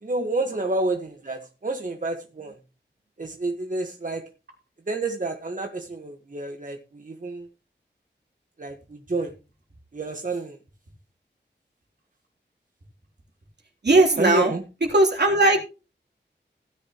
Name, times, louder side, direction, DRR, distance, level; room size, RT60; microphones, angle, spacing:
voice 1, 0.0-2.6 3.2-4.2 4.9-7.5 8.6-9.3 9.9-10.6 14.2-14.6, right 2 dB, 45° right, 4 dB, 1.5 m, -29 dB
voice 2, 13.8-14.5 14.9-15.6, right 2 dB, 65° right, 1 dB, 3.5 m, -18 dB
16.5 x 10.5 x 3.0 m, 0.32 s
wide cardioid pair, 80°, 19 cm